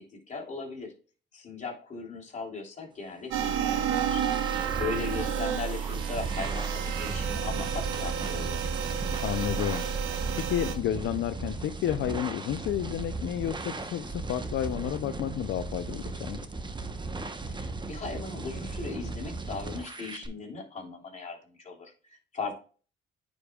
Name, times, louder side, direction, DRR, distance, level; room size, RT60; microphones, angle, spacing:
voice 1, 0.1-0.9 1.3-8.7 17.4-22.6, left 4 dB, 35° left, -1 dB, 3.4 m, -38 dB
sound 1, 3.3-20.3, right 3 dB, 25° right, 1.0 m, -37 dB
sound 2, 3.3-10.7, right 8 dB, 85° right, 0.9 m, -30 dB
voice 2, 9.2-9.9 10.3-16.4, left 11 dB, 75° left, 9 dB, 0.5 m, -31 dB
9.6 x 5.2 x 2.3 m, 0.37 s
cardioid pair, 90°, 20 cm